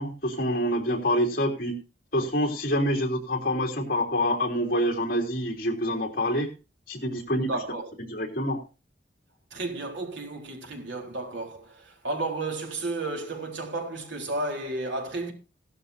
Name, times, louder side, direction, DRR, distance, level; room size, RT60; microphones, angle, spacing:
voice 1, 0.0-1.7 2.1-6.5 6.9-7.5 8.1-8.6, equal, 50° left, 3.2 m, -26 dB
voice 2, 7.4-7.9 9.5-15.3, right 2 dB, 85° right, 3.8 m, -32 dB
17.0 x 12.5 x 2.7 m
head